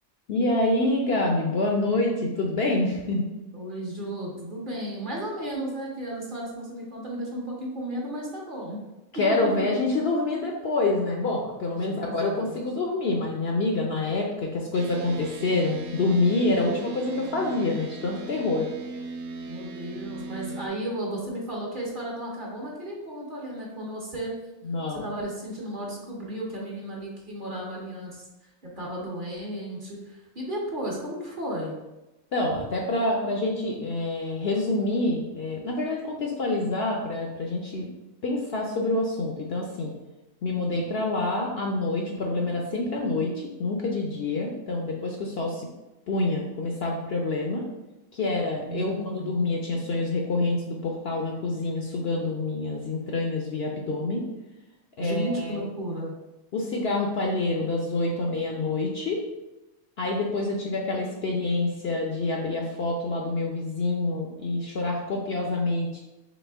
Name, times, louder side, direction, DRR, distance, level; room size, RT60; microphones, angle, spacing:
voice 1, 0.3-3.3 9.1-18.7 24.6-25.1 32.3-37.9 38.2-39.9 40.4-45.7 46.1-47.6 48.1-54.2 55.0-55.7 56.5-59.2 60.0-66.0, left 2 dB, 60° left, 0 dB, 0.7 m, -27 dB
voice 2, 3.5-8.8 9.1-9.5 11.8-12.7 16.5-16.7 19.4-24.3 24.9-28.3 28.8-31.8 32.5-32.6 48.7-49.4 55.0-56.1, right 1 dB, 45° right, -3 dB, 1.0 m, -34 dB
sound 1, 14.7-20.7, right 2 dB, 65° right, 0.9 m, -38 dB
4.1 x 3.4 x 3.4 m, 1.0 s
omnidirectional pair, 1.4 m